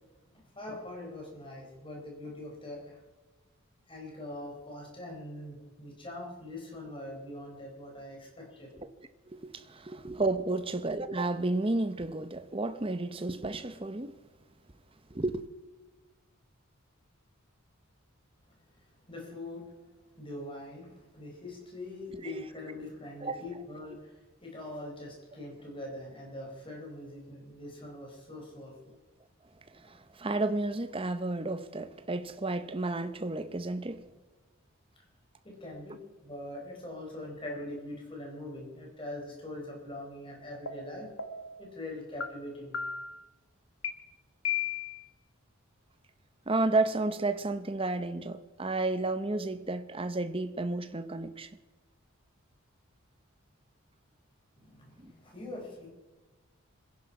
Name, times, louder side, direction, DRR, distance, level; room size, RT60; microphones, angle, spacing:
voice 1, 0.6-3.0 3.9-8.7 19.1-19.7 20.2-29.0 35.4-41.1 41.6-42.9 54.6-55.9, left 1 dB, 25° left, 4.2 m, -43 dB
voice 2, 9.3-14.1 15.1-15.5 22.2-22.4 23.2-23.4 29.7-34.0 46.5-51.5 55.0-55.1, right 2 dB, 25° right, 0.8 m, -32 dB
sound 1, 40.7-40.8 41.2-41.6 42.2-42.3 42.7-43.2 43.8-43.9 44.4-45.1, left 8 dB, 65° left, 1.5 m, -34 dB
26.5 x 10.5 x 4.9 m
head